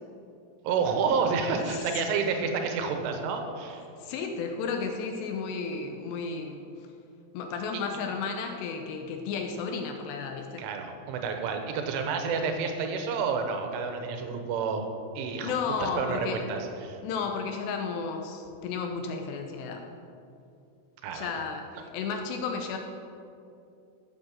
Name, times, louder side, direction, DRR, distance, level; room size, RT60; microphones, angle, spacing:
voice 1, 0.6-3.8 10.6-15.5 15.8-17.0 21.0-21.3, right 5 dB, 90° right, 5 dB, 3.6 m, -29 dB
voice 2, 1.6-2.0 4.0-6.6 7.3-10.7 15.4-16.4 17.0-19.9 21.1-22.8, left 5 dB, 75° left, 4 dB, 2.7 m, -33 dB
12.0 x 7.8 x 7.5 m, 2.6 s
omnidirectional pair, 5.4 m